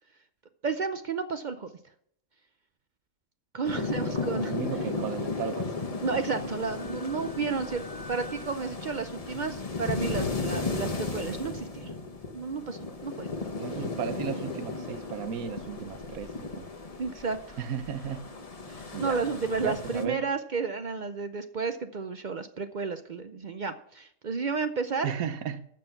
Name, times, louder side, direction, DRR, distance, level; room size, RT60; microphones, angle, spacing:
voice 1, 0.6-1.7 3.5-4.6 6.0-12.0 12.3-13.3 17.0-17.6 18.7-25.1, right 5 dB, 55° right, 9 dB, 0.5 m, -32 dB
sound 1, 3.6-20.1, left 3 dB, 30° left, 1.0 m, -35 dB
voice 2, 3.7-4.1 4.5-5.7 13.6-16.7 17.6-18.3 18.9-19.2 19.6-20.2 25.0-25.7, right 7 dB, 90° right, 11 dB, 1.3 m, -34 dB
Wind instrument woodwind instrument, 6.7-10.2, left 1 dB, 20° right, 2.2 m, -50 dB
13.5 x 6.2 x 5.8 m, 0.70 s
omnidirectional pair, 1.4 m